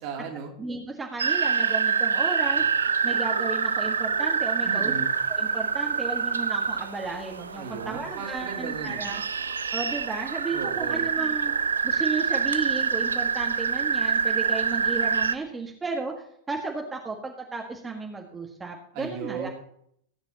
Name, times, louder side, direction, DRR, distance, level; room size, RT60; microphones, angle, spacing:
voice 1, 0.0-0.5 4.6-5.1 7.6-9.0 10.5-11.0 18.9-19.5, right 6 dB, 45° right, 1 dB, 2.9 m, -36 dB
voice 2, 0.6-2.6 3.0-4.9 5.3-9.2 9.7-11.5 11.8-19.5, right 4 dB, 15° right, 0 dB, 1.6 m, -34 dB
sound 1, 1.2-15.4, right 6 dB, 70° right, 0.5 m, -26 dB
18.0 x 9.6 x 3.0 m, 0.69 s
figure-of-eight pair, 90°, 0 cm